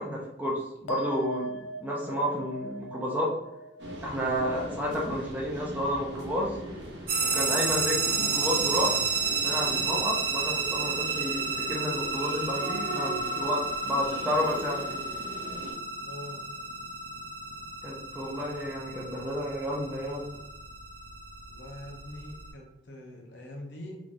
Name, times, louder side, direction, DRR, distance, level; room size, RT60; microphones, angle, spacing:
voice 1, 0.0-1.5 1.8-3.3 4.0-6.6 7.2-9.0 9.3-15.0 17.8-20.3, equal, 10° right, -3 dB, 0.6 m, -31 dB
sound 1, 0.9-7.6 7.8-8.5, equal, 85° left, 0.3 m, -42 dB
sound 2, 3.8-15.7, right 2 dB, 70° right, 0.9 m, -41 dB
sound 3, 7.1-22.5, right 4 dB, 55° right, 0.6 m, -31 dB
voice 2, 16.0-16.4 21.5-24.0, left 1 dB, 70° left, 1 dB, 0.8 m, -43 dB
3.7 x 3.0 x 2.6 m, 0.91 s
head